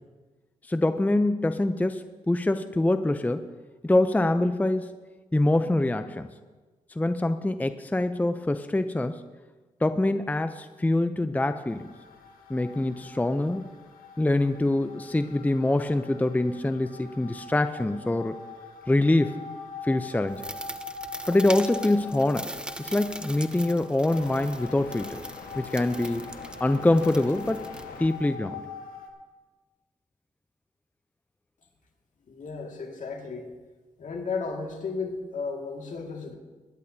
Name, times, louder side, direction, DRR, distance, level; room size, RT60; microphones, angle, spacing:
voice 1, 0.6-3.5 3.8-5.0 5.3-6.3 6.9-9.2 9.8-11.9 12.5-13.7 14.2-18.4 18.9-19.4 19.8-20.4 21.3-22.5 22.8-25.2 25.6-26.3 26.6-27.7 28.0-28.6, left 2 dB, 10° left, 10 dB, 0.5 m, -25 dB
sound 1, 11.7-29.1, left 5 dB, 85° left, 1.6 m, -42 dB
sound 2, 20.3-28.3, right 1 dB, 5° right, 0.9 m, -41 dB
voice 2, 32.3-33.5 34.0-36.4, left 4 dB, 60° left, 2 dB, 2.2 m, -34 dB
21.5 x 10.5 x 2.8 m, 1.3 s
supercardioid pair, 55°, 15 cm